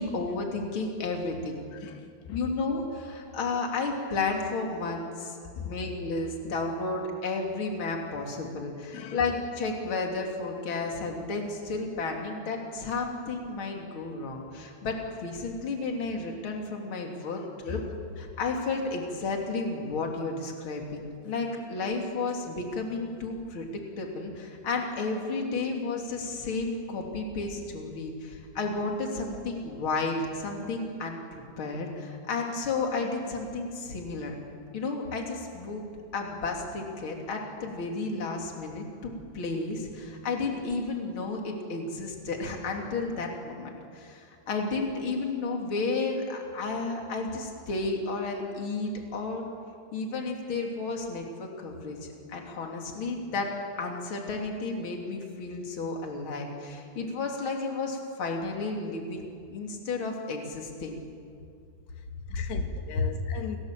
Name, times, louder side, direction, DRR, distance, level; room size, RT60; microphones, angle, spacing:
voice 1, 0.0-1.6 2.3-17.8 18.2-23.7 24.0-34.3 34.7-35.9 36.1-49.5 49.9-59.2 59.5-60.9, left 3 dB, 35° left, 1 dB, 3.2 m, -32 dB
voice 2, 1.7-2.5 4.1-4.2 5.5-5.8 8.9-9.2 17.4-17.9 30.5-30.6 61.9-63.6, left 8 dB, 85° left, 5 dB, 3.8 m, -40 dB
28.5 x 19.5 x 7.7 m, 2.4 s
omnidirectional pair, 4.8 m